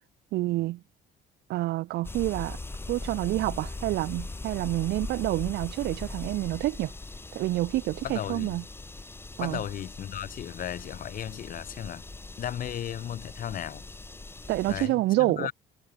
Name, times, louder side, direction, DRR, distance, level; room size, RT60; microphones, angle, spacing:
voice 1, 0.3-0.8 1.5-2.6 2.9-6.9 7.3-8.6 9.4-9.6 14.5-15.5, right 17 dB, 80° right, 2.1 m, -28 dB
sound 1, 2.0-14.9, left 2 dB, 15° left, 1.3 m, -40 dB
voice 2, 8.0-8.6 9.4-12.0 12.4-13.8 14.7-15.5, left 10 dB, 55° left, 5.1 m, -35 dB
cardioid pair, 110°, 17 cm